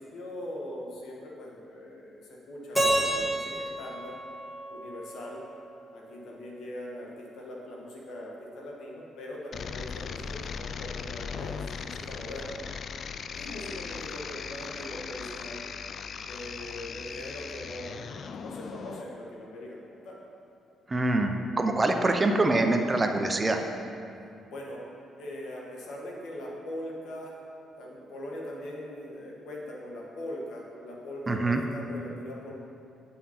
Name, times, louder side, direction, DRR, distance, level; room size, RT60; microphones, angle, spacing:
voice 1, 0.0-4.2 4.7-5.4 5.9-12.7 13.4-15.6 16.2-18.0 18.3-20.2 24.4-24.8 25.2-27.3 27.8-32.5, left 1 dB, 75° left, -2 dB, 1.5 m, -41 dB
Keyboard (musical), 2.8-5.7, right 1 dB, 5° left, 1.6 m, -30 dB
sound 1, 9.5-19.0, left 6 dB, 55° left, 0.3 m, -38 dB
voice 2, 20.9-23.6 31.3-31.6, right 2 dB, 25° right, 5 dB, 0.6 m, -25 dB
9.0 x 5.7 x 4.3 m, 2.5 s
cardioid pair, 90°, 0 cm